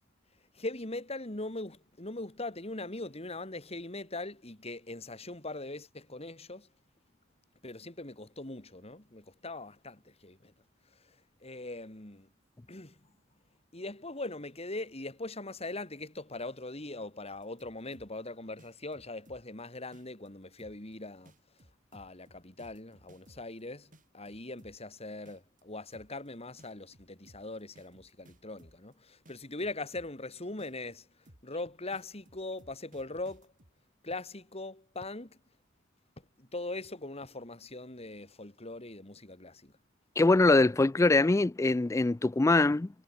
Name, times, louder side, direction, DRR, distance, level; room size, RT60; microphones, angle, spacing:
voice 1, 0.5-6.7 7.6-10.5 11.4-12.3 12.7-13.0 13.7-21.3 21.9-31.1 31.4-33.5 34.0-35.4 36.4-39.7, left 2 dB, 30° left, 2.9 m, -41 dB
sound 1, 17.3-18.3 18.6-19.6 19.9-20.3 20.6-20.9 21.3-23.6 23.9-24.9 25.3-25.6 25.9-26.3 26.6-28.9 29.3-30.3 30.6-30.9 31.3-31.6 31.9-33.7, right 1 dB, 45° right, 5.3 m, -59 dB
voice 2, 40.2-42.9, left 2 dB, 15° left, 0.3 m, -23 dB
head